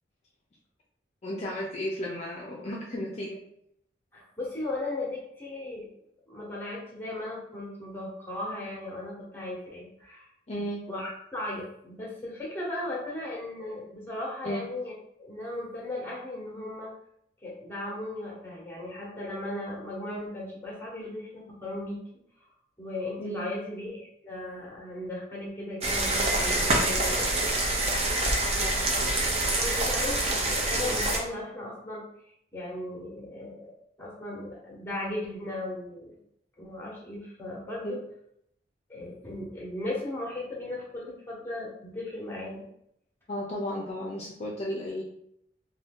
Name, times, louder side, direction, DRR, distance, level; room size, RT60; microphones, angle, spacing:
voice 1, 1.2-3.4 10.5-10.8 14.4-14.6 23.2-23.5 28.5-28.9 37.8-37.9 43.3-45.0, equal, 35° left, -4 dB, 0.4 m, -34 dB
voice 2, 4.1-5.9 6.3-10.3 10.6-14.9 15.2-16.9 17.4-22.0 22.8-27.3 29.5-32.0 32.5-33.7 34.0-36.1 36.6-38.0 38.9-42.6, left 1 dB, 10° left, -4 dB, 0.9 m, -36 dB
sound 1, 25.8-31.2, right 2 dB, 35° right, 0.5 m, -26 dB
2.6 x 2.2 x 3.5 m, 0.74 s
head